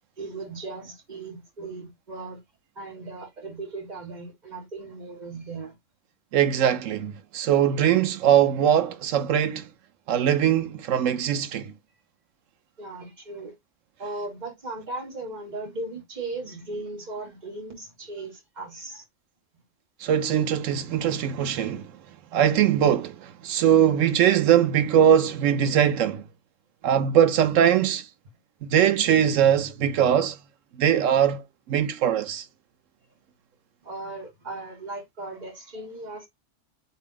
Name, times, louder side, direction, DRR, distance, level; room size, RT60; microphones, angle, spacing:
voice 1, 0.2-2.4 2.7-5.7 12.8-13.5 14.0-19.0 33.8-36.3, right 2 dB, 35° right, 1.5 m, -37 dB
voice 2, 6.3-9.7 10.1-11.7 20.0-21.9 22.3-26.2 26.8-28.1 28.6-30.4 30.7-32.5, right 9 dB, 85° right, 1.0 m, -21 dB
3.4 x 2.8 x 3.7 m
omnidirectional pair, 1.3 m